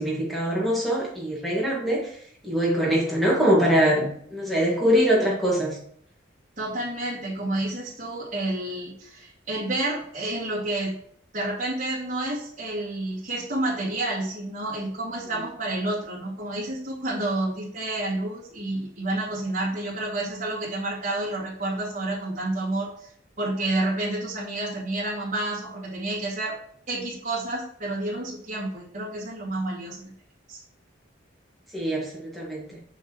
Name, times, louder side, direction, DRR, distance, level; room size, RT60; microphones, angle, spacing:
voice 1, 0.0-2.2 2.4-5.8 31.7-32.8, equal, ahead, -5 dB, 2.0 m, -23 dB
voice 2, 6.6-11.0 11.3-23.1 23.4-26.6 26.9-30.0 30.5-30.6, right 2 dB, 35° right, -8 dB, 2.3 m, -29 dB
6.4 x 6.4 x 3.1 m, 0.63 s
head